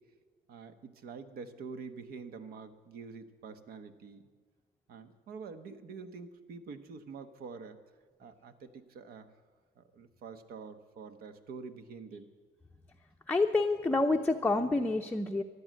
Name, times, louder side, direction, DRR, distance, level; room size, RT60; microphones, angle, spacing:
voice 1, 0.5-4.2 4.9-7.8 8.2-9.3 9.8-12.3, right 5 dB, 65° right, 9 dB, 1.2 m, -46 dB
voice 2, 13.3-15.4, left 2 dB, 10° left, 3 dB, 0.6 m, -28 dB
14.5 x 11.5 x 7.6 m, 1.5 s
cardioid pair, 110°, 17 cm